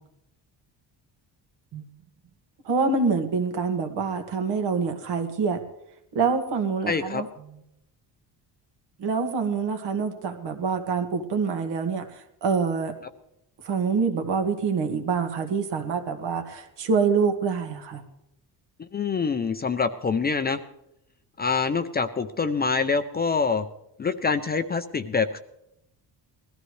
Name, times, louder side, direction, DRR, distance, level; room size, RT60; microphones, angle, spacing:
voice 1, 2.7-5.6 6.1-7.3 9.0-13.0 13.6-18.0, right 5 dB, 70° right, 6 dB, 1.9 m, -26 dB
voice 2, 6.9-7.2 18.8-20.6 21.4-23.7 24.0-25.4, left 5 dB, 25° left, 9 dB, 0.5 m, -25 dB
21.0 x 14.5 x 3.2 m, 0.82 s
cardioid pair, 160°, 43 cm